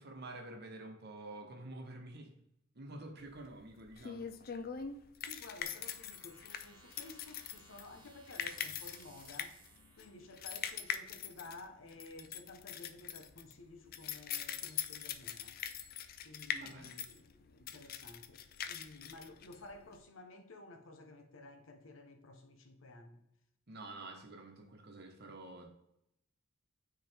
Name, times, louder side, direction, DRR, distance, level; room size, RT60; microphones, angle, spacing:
voice 1, 0.0-2.3 2.7-4.4 16.5-17.0 23.7-25.7, right 2 dB, 55° right, 1.1 m, -48 dB
sound 1, 3.3-20.0, left 8 dB, 45° left, 0.4 m, -43 dB
voice 2, 5.2-9.6 10.0-15.5 16.2-23.2, left 2 dB, 75° left, 0.9 m, -53 dB
sound 2, 5.6-11.6, right 2 dB, 20° right, 1.1 m, -62 dB
8.8 x 3.7 x 3.5 m
head